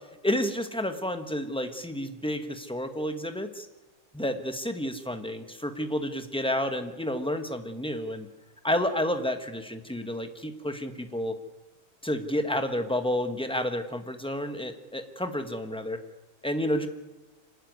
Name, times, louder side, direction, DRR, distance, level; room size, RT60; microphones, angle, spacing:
voice 1, 0.2-3.7 4.1-8.3 8.6-11.3 12.0-16.0 16.4-16.9, left 1 dB, 5° left, 7 dB, 0.7 m, -30 dB
25.5 x 12.5 x 9.5 m, 1.2 s
omnidirectional pair, 2.4 m